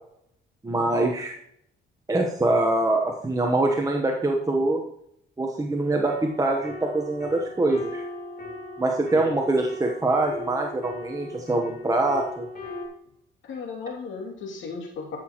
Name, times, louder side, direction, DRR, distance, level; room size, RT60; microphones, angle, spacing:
voice 1, 0.6-1.3 2.1-4.8 5.4-8.0 8.8-12.5, right 2 dB, 15° right, 1 dB, 1.1 m, -24 dB
sound 1, 6.1-12.9, left 2 dB, 50° left, 3.4 m, -39 dB
voice 2, 13.4-15.2, left 5 dB, 75° left, 0 dB, 2.7 m, -35 dB
13.5 x 6.2 x 3.0 m, 0.72 s
cardioid pair, 90°, 20 cm